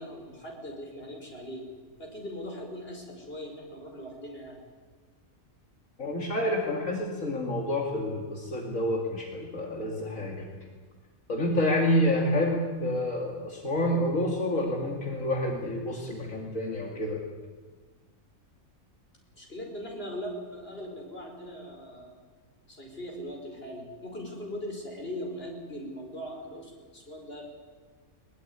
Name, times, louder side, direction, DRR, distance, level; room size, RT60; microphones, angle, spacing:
voice 1, 0.0-1.7 2.0-4.6 19.4-22.1 22.7-27.4, equal, 45° left, 1 dB, 5.5 m, -40 dB
voice 2, 6.0-10.5 11.3-17.2, left 1 dB, 70° left, 1 dB, 2.8 m, -28 dB
21.5 x 19.5 x 9.6 m, 1.4 s
omnidirectional pair, 1.4 m